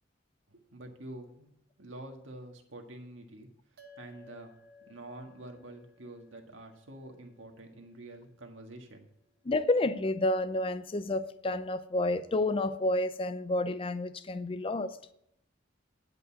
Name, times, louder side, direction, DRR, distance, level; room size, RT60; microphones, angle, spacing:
voice 1, 0.5-1.5 1.8-4.5 4.9-9.1, right 1 dB, 85° right, 1.7 m, -47 dB
sound 1, 3.8-8.5, left 3 dB, 55° right, 1.1 m, -59 dB
voice 2, 9.5-15.0, left 2 dB, 30° left, 0.5 m, -30 dB
11.0 x 5.3 x 7.0 m
head